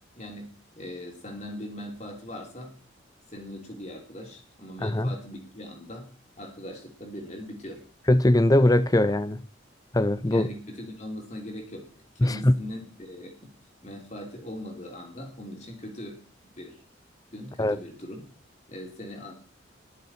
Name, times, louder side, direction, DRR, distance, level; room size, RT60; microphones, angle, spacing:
voice 1, 0.2-2.7 3.3-6.1 6.4-7.8 10.2-13.4 13.8-16.8 17.3-18.3 18.7-19.3, left 1 dB, 35° left, 3.3 m, -40 dB
voice 2, 4.8-5.1 8.1-9.4 9.9-10.5 12.2-12.5 17.6-17.8, left 1 dB, 20° left, 0.6 m, -21 dB
20.5 x 6.9 x 4.4 m
head